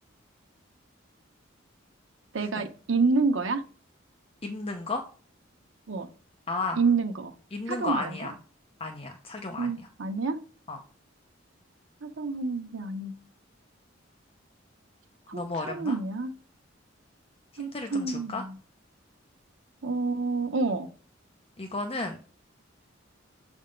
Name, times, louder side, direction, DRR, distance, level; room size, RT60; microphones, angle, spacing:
voice 1, 2.3-3.6 5.9-6.1 6.8-7.3 7.7-8.3 9.6-10.4 12.0-13.1 15.3-16.3 17.6-18.6 19.8-20.9, right 4 dB, 85° right, 7 dB, 0.9 m, -28 dB
voice 2, 4.4-5.0 6.5-6.8 7.5-8.3 8.8-9.7 10.7-10.8 15.3-16.0 17.5-18.4 21.6-22.2, left 3 dB, 30° left, 5 dB, 0.6 m, -33 dB
6.8 x 3.5 x 5.1 m, 0.41 s
head